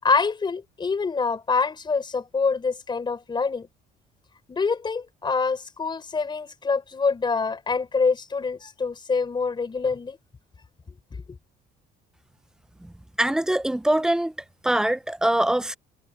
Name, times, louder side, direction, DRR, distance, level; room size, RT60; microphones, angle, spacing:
voice 1, 0.0-3.7 4.5-10.2, left 4 dB, 25° left, 4.6 m, -25 dB
voice 2, 13.2-14.3 14.6-15.8, right 1 dB, 5° right, 0.5 m, -23 dB
cardioid pair, 110°, 17 cm